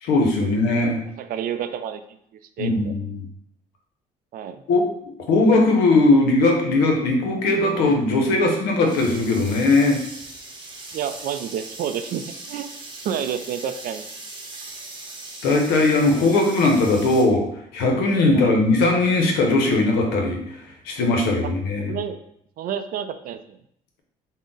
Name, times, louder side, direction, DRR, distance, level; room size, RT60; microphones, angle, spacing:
voice 1, 0.0-1.0 2.6-3.2 4.7-4.9 5.3-10.0 15.4-17.5 17.7-20.4 20.9-21.9, left 2 dB, 90° left, 2 dB, 0.7 m, -19 dB
voice 2, 1.2-2.2 2.6-2.9 4.3-4.6 10.9-12.7 13.0-14.1 18.3-18.6 21.4-21.5 21.9-22.2 22.6-23.6, right 8 dB, 65° right, 9 dB, 0.4 m, -29 dB
sound 1, 7.7-17.2, right 2 dB, 30° right, 0.8 m, -39 dB
3.6 x 2.1 x 3.8 m, 0.72 s
supercardioid pair, 75°, 16 cm